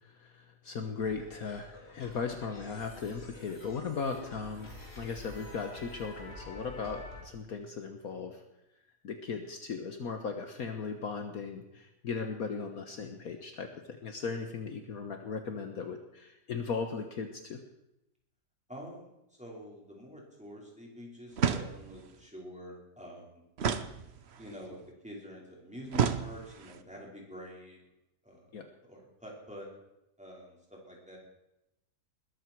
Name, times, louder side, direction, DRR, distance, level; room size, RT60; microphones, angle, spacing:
voice 1, 0.0-4.7 5.0-8.4 9.0-17.6 28.5-28.7, left 5 dB, 60° left, 5 dB, 1.5 m, -37 dB
sound 1, 1.0-7.2, left 2 dB, 35° left, 4.2 m, -48 dB
voice 2, 18.7-19.1 19.4-23.4 24.4-27.8 28.2-29.7 30.2-31.2, equal, 5° right, -3 dB, 4.9 m, -47 dB
sound 2, 21.4-22.1 23.6-24.5 25.9-26.8, right 7 dB, 50° right, 1.0 m, -31 dB
21.0 x 13.5 x 4.7 m, 0.91 s
omnidirectional pair, 1.8 m